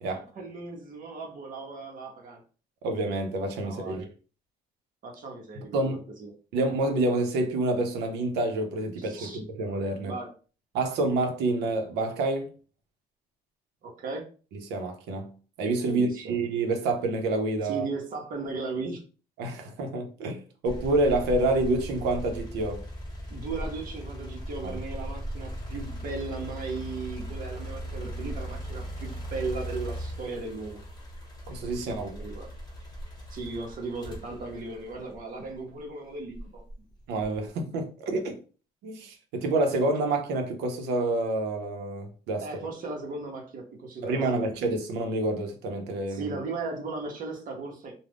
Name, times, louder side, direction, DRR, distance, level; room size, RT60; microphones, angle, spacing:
voice 1, 0.1-2.4 3.6-4.1 5.0-5.8 6.2-6.3 9.0-9.4 10.0-10.3 13.8-14.2 15.9-16.3 17.6-19.0 23.3-30.8 31.9-32.5 33.3-36.6 42.4-44.4 46.1-47.9, right 3 dB, 55° right, 0.8 m, -37 dB
voice 2, 2.8-4.1 5.7-6.0 6.5-10.1 10.7-12.5 14.7-15.3 15.6-17.9 19.4-22.8 24.6-24.7 31.5-32.1 37.1-38.4 38.8-42.6 44.0-46.4, right 2 dB, 85° right, 0.7 m, -28 dB
sound 1, 20.7-35.7 36.3-37.5, equal, 25° left, 0.9 m, -38 dB
2.4 x 2.1 x 3.4 m
cardioid pair, 110°, 17 cm